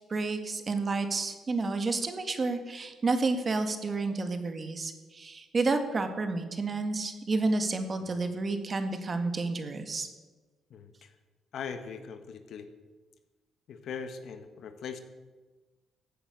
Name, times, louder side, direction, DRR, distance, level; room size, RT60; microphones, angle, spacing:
voice 1, 0.1-10.1, right 3 dB, 35° right, 7 dB, 1.8 m, -30 dB
voice 2, 10.7-11.1 11.5-12.7 13.7-15.0, left 6 dB, 70° left, 9 dB, 1.4 m, -40 dB
15.5 x 8.8 x 6.8 m, 1.3 s
cardioid pair, 90°, 0 cm